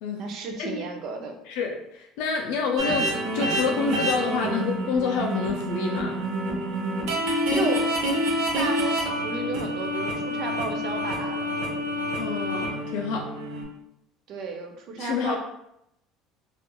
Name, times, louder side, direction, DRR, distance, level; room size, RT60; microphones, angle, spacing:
voice 1, 0.2-1.4 7.5-7.9 8.5-11.5 14.3-15.4, right 4 dB, 45° right, 4 dB, 0.4 m, -33 dB
voice 2, 1.5-3.1 3.3-6.2 12.2-13.2 15.0-15.4, left 5 dB, 75° left, 1 dB, 0.3 m, -28 dB
sound 1, 2.8-13.6, equal, 90° right, 0.7 m, -27 dB
2.9 x 2.3 x 2.2 m, 0.80 s
cardioid pair, 165°, 0 cm